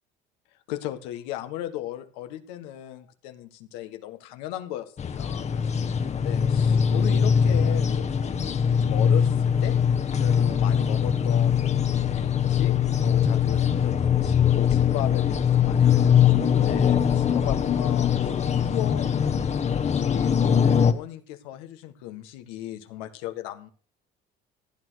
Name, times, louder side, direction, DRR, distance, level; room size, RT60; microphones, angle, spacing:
voice 1, 0.7-9.8 10.2-18.3 18.6-19.1 19.7-20.6 20.8-23.7, left 13 dB, 85° left, 8 dB, 1.7 m, -37 dB
sound 1, 5.0-20.9, left 8 dB, 35° left, 1.3 m, -22 dB
15.5 x 9.3 x 6.4 m, 0.42 s
supercardioid pair, 90°, 19 cm